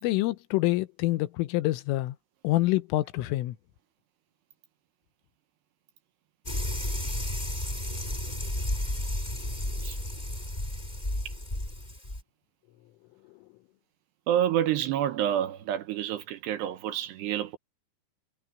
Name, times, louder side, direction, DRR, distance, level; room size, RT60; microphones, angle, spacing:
voice 1, 0.0-2.2 2.4-3.6, left 17 dB, 85° left, 3.6 m, -26 dB
sound 1, 6.5-12.2, left 1 dB, 10° left, 4.1 m, -32 dB
voice 2, 14.3-17.6, right 11 dB, 70° right, 3.0 m, -28 dB
omnidirectional pair, 5.6 m